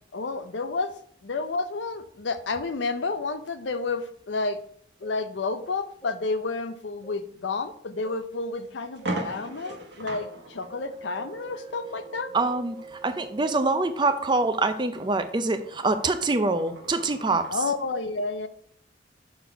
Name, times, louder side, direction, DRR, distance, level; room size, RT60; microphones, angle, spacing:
voice 1, 0.1-0.9 1.2-4.6 5.0-12.3 17.5-18.5, left 3 dB, 90° left, 10 dB, 0.6 m, -30 dB
sound 1, 5.0-5.1 6.0-6.1 7.0-7.1 8.0-8.1 9.0-9.1 9.7-9.8 10.2-10.3 10.7-13.9, right 4 dB, 25° left, 0.9 m, -45 dB
sound 2, 8.0-8.1 8.5-8.6 8.9-17.6, right 1 dB, 85° right, 1.1 m, -40 dB
voice 2, 12.3-17.5, right 3 dB, 25° right, 9 dB, 0.5 m, -25 dB
6.4 x 4.0 x 4.5 m, 0.63 s
head